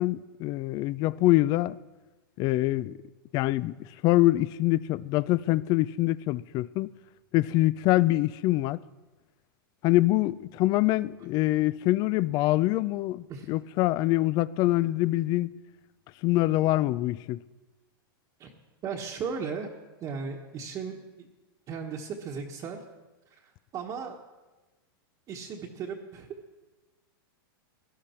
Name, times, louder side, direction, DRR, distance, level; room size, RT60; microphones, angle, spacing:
voice 1, 0.0-1.8 2.4-3.0 3.3-3.7 4.0-6.9 7.3-8.8 9.8-15.5 16.2-17.4, left 17 dB, 35° left, 0.4 m, -25 dB
voice 2, 18.8-19.7 20.0-21.3 21.7-22.8 23.3-24.1 25.3-26.3, right 6 dB, 30° right, 1.2 m, -36 dB
17.5 x 12.0 x 4.4 m
hypercardioid pair, 140°, 12 cm